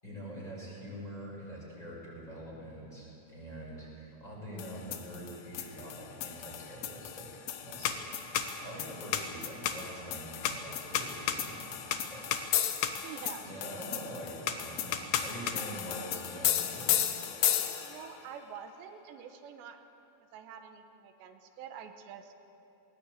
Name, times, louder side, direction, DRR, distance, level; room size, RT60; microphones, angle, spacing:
voice 1, 0.0-11.9 12.1-12.3 13.4-17.1, equal, 10° left, -5 dB, 7.0 m, -45 dB
sound 1, 4.6-18.1, left 10 dB, 80° left, 3.2 m, -33 dB
voice 2, 13.0-13.9 17.8-19.8 20.3-22.3, right 8 dB, 90° right, 6 dB, 3.4 m, -47 dB
21.0 x 19.5 x 8.3 m, 2.9 s
omnidirectional pair, 4.8 m